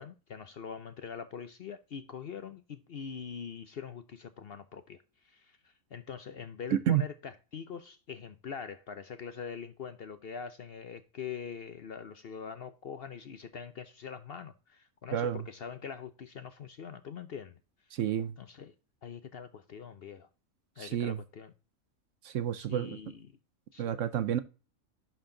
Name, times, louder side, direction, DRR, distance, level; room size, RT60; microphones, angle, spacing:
voice 1, 0.0-17.6 18.4-18.7 19.0-20.3 20.8-21.5 22.5-23.3 23.7-23.9, left 6 dB, 55° left, 0.7 m, -43 dB
voice 2, 6.7-7.0 15.1-15.4 17.9-18.3 20.8-21.2 22.2-23.0 23.8-24.4, right 10 dB, 65° right, 0.9 m, -29 dB
11.0 x 4.4 x 3.8 m
omnidirectional pair, 1.5 m